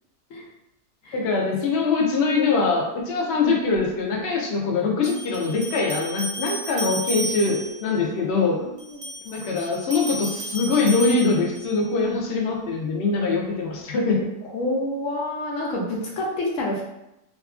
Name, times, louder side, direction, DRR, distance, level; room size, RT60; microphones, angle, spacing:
voice 1, 1.1-8.6 9.3-14.3, left 4 dB, 80° left, -1 dB, 0.5 m, -23 dB
sound 1, 3.7-3.8 5.0-7.9 8.8-11.8, right 1 dB, 65° right, 0.9 m, -33 dB
voice 2, 8.1-9.8 14.5-16.8, left 1 dB, 65° left, -2 dB, 0.9 m, -30 dB
2.7 x 2.4 x 2.3 m, 0.87 s
omnidirectional pair, 1.7 m